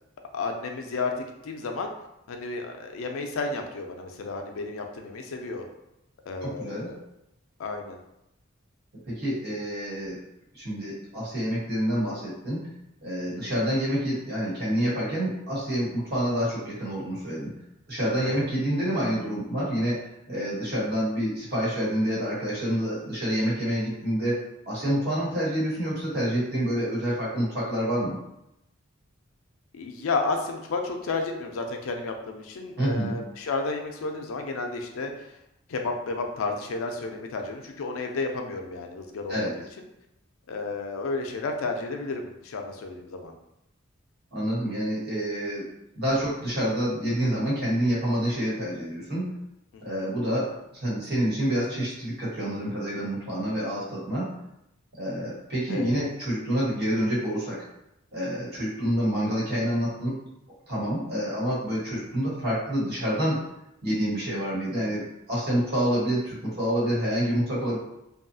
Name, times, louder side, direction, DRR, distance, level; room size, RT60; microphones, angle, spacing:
voice 1, 0.3-1.9 2.3-5.6 6.3-7.0 7.6-8.0 13.2-13.5 18.2-18.5 29.7-35.1 35.7-39.6 40.5-43.3 49.7-50.1 55.7-56.0 62.1-62.3, left 3 dB, 85° left, 4 dB, 0.4 m, -32 dB
voice 2, 6.4-6.9 9.1-10.2 10.5-12.7 13.0-17.5 17.9-24.4 24.6-28.2 32.8-33.2 39.3-39.5 44.3-45.7 45.9-49.2 49.8-50.5 50.8-54.3 54.9-57.6 58.1-60.2 60.7-63.4 63.8-67.8, equal, 50° right, -7 dB, 1.3 m, -27 dB
2.7 x 2.3 x 2.6 m, 0.84 s
head